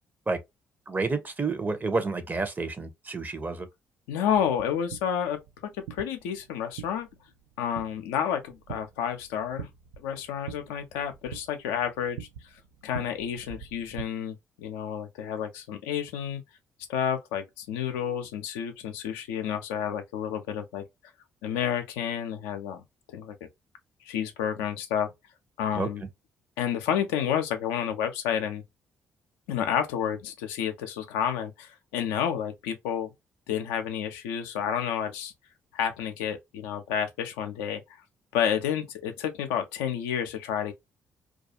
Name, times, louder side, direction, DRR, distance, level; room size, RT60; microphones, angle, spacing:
voice 1, 0.9-3.7 25.7-25.9, right 3 dB, 25° right, 0.7 m, -29 dB
voice 2, 4.1-7.1 7.6-9.7 10.0-12.3 12.8-16.4 16.9-20.8 21.4-22.8 23.1-23.3 24.0-25.1 25.6-26.0 26.6-28.6 29.5-33.1 33.5-35.3 35.7-37.8 38.3-40.7, left 9 dB, 70° left, 0.4 m, -30 dB
sound 1, 4.3-14.1, right 9 dB, 70° right, 0.4 m, -45 dB
2.3 x 2.3 x 2.8 m
figure-of-eight pair, 40°, 7 cm